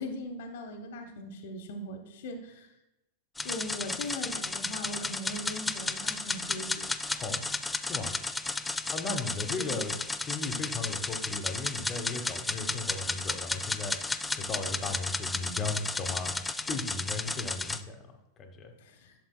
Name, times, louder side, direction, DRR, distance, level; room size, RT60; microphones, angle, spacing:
voice 1, 0.0-2.7 3.4-6.9 9.6-9.8 18.8-19.1, left 1 dB, 55° left, 4 dB, 0.8 m, -40 dB
sound 1, 3.4-17.8, left 3 dB, 10° left, 0.3 m, -33 dB
voice 2, 7.0-7.4 7.8-8.1 8.9-10.0 10.2-18.7, left 3 dB, 25° left, 4 dB, 0.9 m, -36 dB
11.5 x 6.7 x 2.2 m, 0.92 s
figure-of-eight pair, 90°, 0 cm